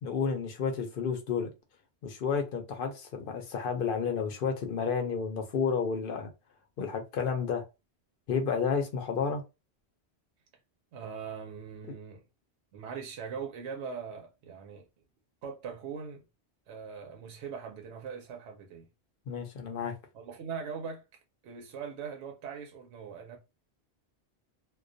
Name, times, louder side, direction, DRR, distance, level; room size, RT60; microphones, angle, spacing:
voice 1, 0.0-1.5 2.0-6.3 6.8-7.6 8.3-9.4 19.3-20.0, left 6 dB, 60° left, 0.7 m, -31 dB
voice 2, 10.9-12.2 12.7-14.9 15.4-16.2 16.7-18.9 20.1-21.0 21.4-23.4, right 6 dB, 80° right, 0.8 m, -41 dB
2.3 x 2.2 x 2.5 m
omnidirectional pair, 1.1 m